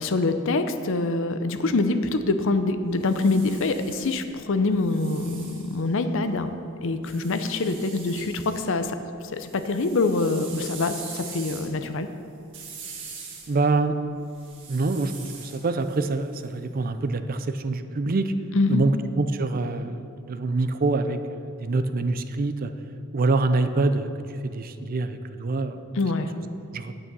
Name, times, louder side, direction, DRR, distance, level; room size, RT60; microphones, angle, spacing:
voice 1, 0.0-6.5 6.8-9.0 9.3-12.1 18.5-18.8 25.9-26.3, left 3 dB, 60° left, 9 dB, 0.6 m, -25 dB
sound 1, 2.8-6.4 7.0-8.7 9.0-16.9, right 5 dB, 60° right, 1.7 m, -43 dB
voice 2, 13.5-14.0 14.7-18.3 18.7-22.7 23.1-24.1 24.4-25.8 26.7-26.9, right 3 dB, 40° right, 10 dB, 0.5 m, -25 dB
8.8 x 8.6 x 5.4 m, 2.7 s
head